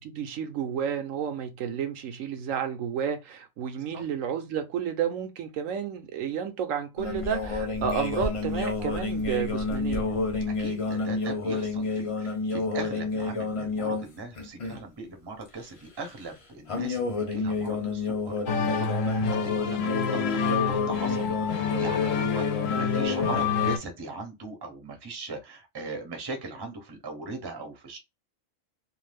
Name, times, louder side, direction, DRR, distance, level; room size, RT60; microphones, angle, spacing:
voice 1, 0.0-10.1, right 8 dB, 80° right, 1.0 m, -31 dB
sound 1, 7.0-14.1 14.4-14.8 16.7-23.8, left 4 dB, 45° left, 0.4 m, -29 dB
voice 2, 10.5-28.0, right 3 dB, 25° right, 0.6 m, -39 dB
sound 2, 18.5-23.8, left 6 dB, 75° left, 0.9 m, -29 dB
2.6 x 2.4 x 3.3 m
omnidirectional pair, 1.4 m